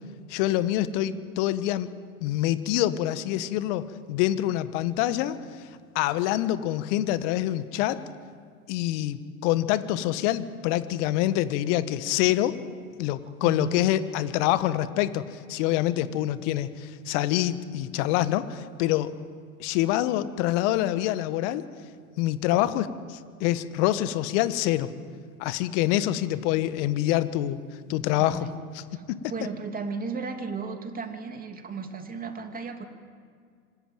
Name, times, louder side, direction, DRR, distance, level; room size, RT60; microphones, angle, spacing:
voice 1, 0.3-1.9 2.2-5.4 5.9-8.0 8.7-12.6 13.0-19.1 19.6-21.6 22.2-24.9 25.4-27.6 27.9-28.5 29.1-29.2, left 14 dB, 55° left, 13 dB, 1.4 m, -26 dB
voice 2, 13.4-13.8 16.0-16.1 28.2-28.6 28.9-32.8, right 4 dB, 20° right, 5 dB, 2.9 m, -35 dB
26.0 x 13.5 x 9.2 m, 2.1 s
hypercardioid pair, 95°, 42 cm